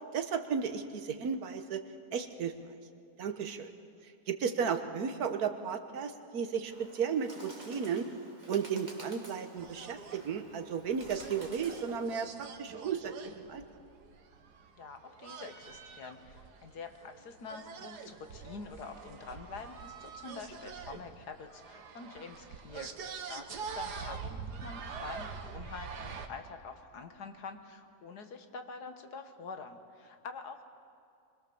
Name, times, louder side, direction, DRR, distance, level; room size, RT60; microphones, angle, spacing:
voice 1, 0.1-1.8 2.1-2.5 3.2-3.7 4.3-8.1 8.5-13.6, right 6 dB, 70° right, 7 dB, 1.7 m, -34 dB
Bird, 6.7-12.3, right 1 dB, 25° right, 2.8 m, -51 dB
sound 1, 9.6-26.3, right 5 dB, 90° right, 1.9 m, -45 dB
voice 2, 14.8-30.6, left 4 dB, 80° left, 7 dB, 2.0 m, -46 dB
24.5 x 21.5 x 7.1 m, 2.4 s
omnidirectional pair, 1.7 m